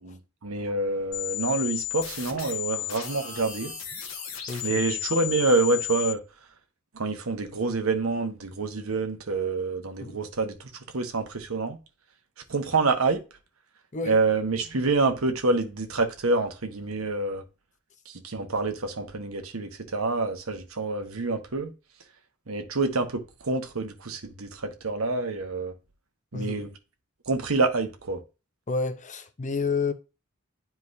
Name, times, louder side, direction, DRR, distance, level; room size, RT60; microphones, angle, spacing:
voice 1, 0.0-3.7 4.6-6.2 6.9-11.8 12.5-13.2 14.1-17.4 18.1-21.7 22.5-25.7 26.3-26.7 27.3-28.2, right 3 dB, 80° right, 1.1 m, -27 dB
sound 1, 1.1-6.1, left 13 dB, 70° left, 1.6 m, -34 dB
voice 2, 4.5-4.8 10.0-10.2 13.9-14.2 26.3-26.6 28.7-29.9, left 4 dB, 35° left, 0.7 m, -30 dB
9.8 x 4.7 x 2.7 m
head